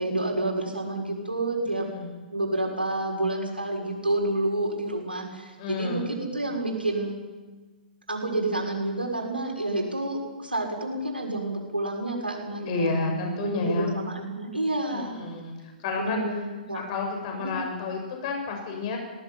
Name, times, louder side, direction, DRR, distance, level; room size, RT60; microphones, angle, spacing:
voice 1, 0.0-1.9 2.3-7.2 8.1-15.2 16.0-16.8 17.4-17.6, right 2 dB, 85° right, 1 dB, 6.7 m, -29 dB
voice 2, 1.8-2.2 5.6-6.1 12.7-14.0 14.9-15.5 15.8-16.2 16.7-19.0, left 3 dB, 40° left, 3 dB, 6.8 m, -30 dB
20.0 x 19.0 x 9.7 m, 1.3 s
figure-of-eight pair, 115°, 5 cm